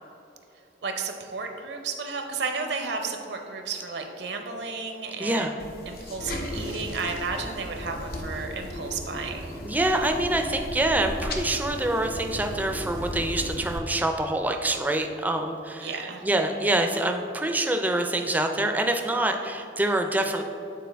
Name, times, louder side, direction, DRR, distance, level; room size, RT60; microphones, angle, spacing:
voice 1, 0.8-5.5 5.9-9.6 15.8-16.2, right 4 dB, 70° right, 4 dB, 0.6 m, -33 dB
voice 2, 5.2-5.5 9.6-20.4, right 1 dB, 10° right, 5 dB, 0.3 m, -26 dB
sound 1, 5.6-13.8, left 1 dB, 55° left, 0.7 m, -35 dB
8.5 x 3.9 x 3.4 m, 2.9 s
head